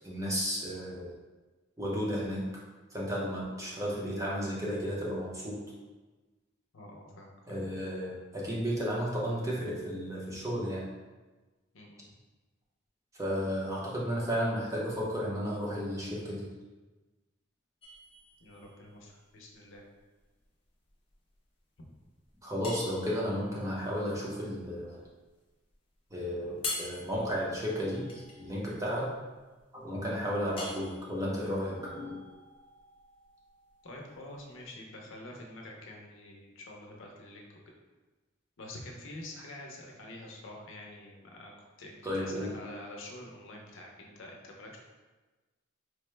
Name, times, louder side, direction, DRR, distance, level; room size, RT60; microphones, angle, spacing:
voice 1, 0.0-1.1 1.8-2.5 2.9-5.6 7.5-10.8 13.2-16.5 22.4-25.0 26.1-29.1 29.7-32.2 42.0-42.5, equal, 15° right, -5 dB, 0.7 m, -33 dB
voice 2, 6.7-7.7 11.7-12.0 18.4-19.8 33.8-37.5 38.6-41.5 41.8-44.8, left 1 dB, 70° left, 0 dB, 0.6 m, -47 dB
sound 1, 17.8-34.6, left 3 dB, 25° left, 0.5 m, -46 dB
4.6 x 2.1 x 3.2 m, 1.2 s
head